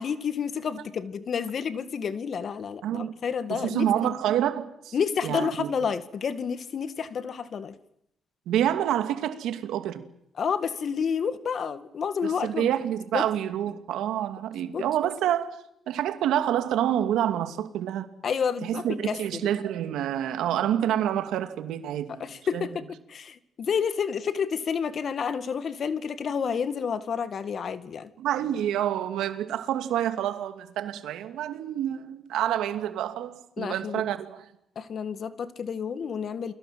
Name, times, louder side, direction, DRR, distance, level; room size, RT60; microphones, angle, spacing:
voice 1, 0.0-4.1 4.9-7.8 10.4-12.7 13.1-13.3 14.6-14.9 18.2-19.5 22.1-28.1 33.6-34.0 34.8-36.5, left 6 dB, 55° left, 2.1 m, -30 dB
voice 2, 2.8-3.1 3.5-4.9 5.2-5.7 8.5-10.0 12.2-15.6 15.9-18.1 18.6-22.2 22.5-22.7 28.2-34.5, right 11 dB, 85° right, 2.5 m, -28 dB
29.5 x 22.5 x 7.7 m
cardioid pair, 90°, 0 cm